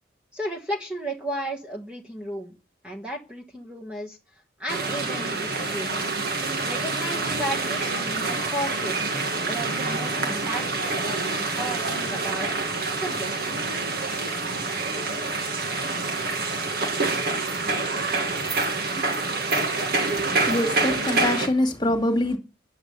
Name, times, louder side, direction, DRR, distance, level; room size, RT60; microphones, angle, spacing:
voice 1, 0.3-2.5 2.8-4.2 4.6-6.0 6.6-9.1 9.5-10.9 11.3-12.5 12.9-13.4, right 1 dB, 5° right, 1.4 m, -34 dB
sound 1, 4.7-21.5, right 3 dB, 55° right, 1.9 m, -27 dB
voice 2, 20.1-22.4, left 1 dB, 25° left, 2.1 m, -25 dB
10.5 x 8.6 x 6.9 m
head